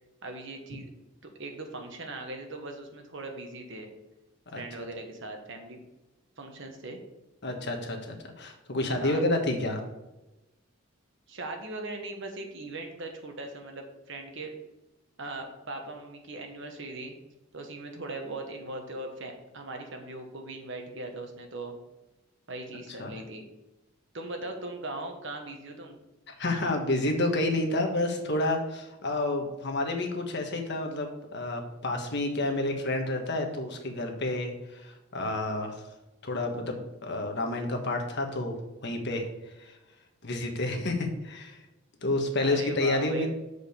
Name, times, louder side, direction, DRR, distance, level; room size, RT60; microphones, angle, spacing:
voice 1, 0.2-0.9 1.2-3.9 4.5-5.8 6.4-7.0 9.0-9.2 11.3-14.5 15.2-17.1 17.5-21.8 22.5-23.4 24.1-26.0 42.4-43.3, right 2 dB, 65° right, 4 dB, 1.4 m, -39 dB
voice 2, 7.4-9.8 23.0-23.1 26.4-35.8 36.2-38.5 38.8-39.3 39.6-39.7 40.2-41.6 42.0-43.3, left 2 dB, 55° left, 2 dB, 1.4 m, -29 dB
6.7 x 5.0 x 7.1 m, 0.99 s
head